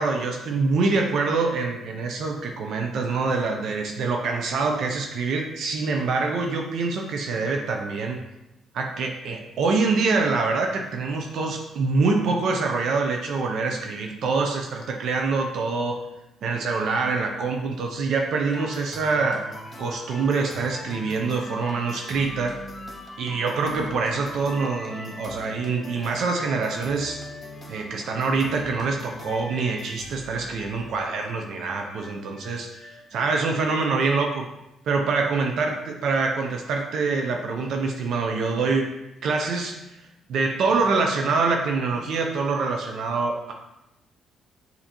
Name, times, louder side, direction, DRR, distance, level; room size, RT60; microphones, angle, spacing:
voice 1, 0.0-8.2 8.7-16.0 16.4-19.4 19.8-22.6 23.2-27.2 27.7-34.4 34.9-38.9 39.2-39.8 40.3-43.5, right 4 dB, 70° right, 2 dB, 0.5 m, -25 dB
sound 1, 18.5-33.6, left 1 dB, 30° left, 0.7 m, -41 dB
6.5 x 2.7 x 2.9 m, 0.93 s
cardioid pair, 90°, 0 cm